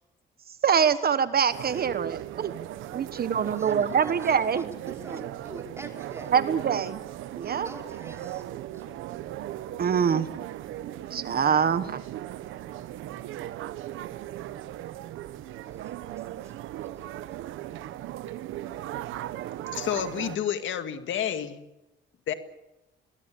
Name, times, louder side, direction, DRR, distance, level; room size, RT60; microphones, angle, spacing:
voice 1, 0.6-2.5 2.9-4.6 5.1-5.2 6.3-7.0 7.4-7.7 9.8-10.3 11.1-12.0, right 7 dB, 50° right, 13 dB, 1.2 m, -24 dB
sound 1, 1.5-20.4, right 13 dB, 90° right, 1.1 m, -37 dB
voice 2, 2.9-6.3 7.4-8.4 8.7-8.8 15.5-17.4, right 1 dB, 15° right, 3 dB, 4.9 m, -47 dB
voice 3, 19.7-21.6 22.3-22.4, left 9 dB, 75° left, 9 dB, 1.9 m, -30 dB
22.5 x 20.5 x 8.5 m, 0.97 s
cardioid pair, 90°, 20 cm